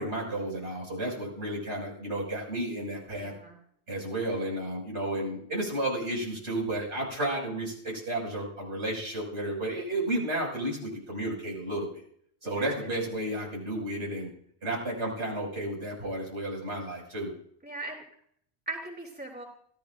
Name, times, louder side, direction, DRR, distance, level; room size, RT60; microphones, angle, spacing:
voice 1, 0.0-3.3 3.9-11.9 12.4-14.3 14.6-17.3, right 1 dB, 85° right, -3 dB, 6.7 m, -32 dB
voice 2, 3.1-3.6 12.4-12.7 17.6-18.0 18.7-19.4, right 2 dB, 10° right, 0 dB, 3.1 m, -39 dB
25.0 x 16.5 x 2.6 m, 0.64 s
omnidirectional pair, 1.1 m